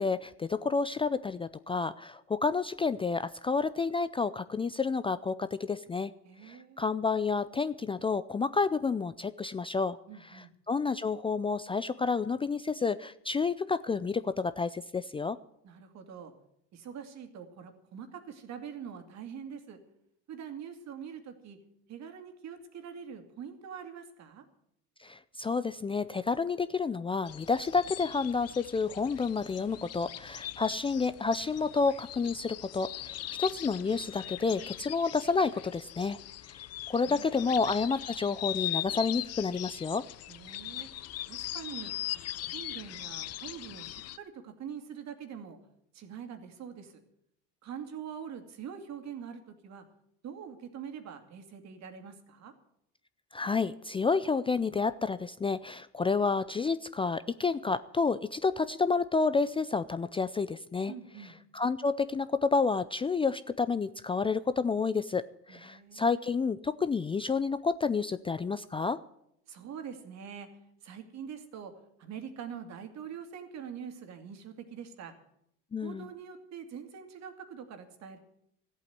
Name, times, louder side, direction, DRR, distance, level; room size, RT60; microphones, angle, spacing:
voice 1, 0.0-6.1 6.4-10.0 10.2-15.4 25.0-36.2 36.9-40.0 53.3-60.9 61.2-65.2 65.5-69.0 75.7-76.0, left 4 dB, 15° left, 13 dB, 0.4 m, -30 dB
voice 2, 6.2-6.8 10.1-10.5 15.6-16.3 16.7-19.8 20.3-21.6 21.9-24.4 37.0-37.5 40.3-40.9 41.3-45.6 45.9-46.9 47.6-49.8 50.2-52.5 60.9-61.4 65.5-66.3 69.5-70.5 70.8-71.7 72.0-75.1 75.8-78.2, right 7 dB, 55° right, 7 dB, 2.5 m, -44 dB
sound 1, 27.3-44.2, left 14 dB, 45° left, 0.7 m, -40 dB
14.0 x 8.5 x 9.4 m, 0.77 s
supercardioid pair, 85°, 33 cm